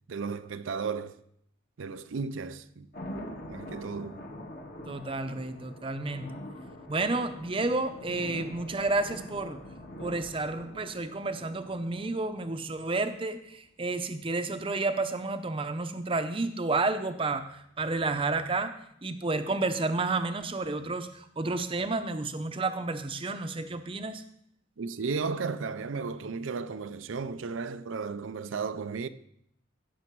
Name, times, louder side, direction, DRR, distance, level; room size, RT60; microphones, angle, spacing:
voice 1, 0.1-1.1 1.8-2.9 3.5-4.2 24.8-29.1, right 5 dB, 90° right, 0.5 m, -34 dB
sound 1, 2.9-12.9 15.3-15.4, equal, 50° left, 1.6 m, -44 dB
voice 2, 4.9-6.3 6.9-9.6 10.0-18.7 19.0-24.2, right 3 dB, 30° right, 0.6 m, -31 dB
15.5 x 6.3 x 4.6 m
head